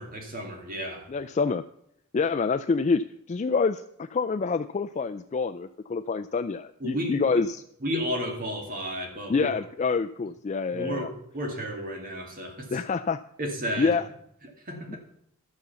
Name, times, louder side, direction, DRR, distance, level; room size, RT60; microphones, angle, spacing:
voice 1, 0.0-1.1 6.8-7.3 7.8-9.5 10.7-12.8 13.4-13.9 14.6-15.0, equal, 40° right, 2 dB, 2.2 m, -32 dB
voice 2, 1.1-1.6 2.1-7.6 9.3-11.1 12.7-13.2 13.8-14.0 14.9-15.0, left 4 dB, 35° left, 10 dB, 0.3 m, -27 dB
12.0 x 6.9 x 7.0 m, 0.71 s
head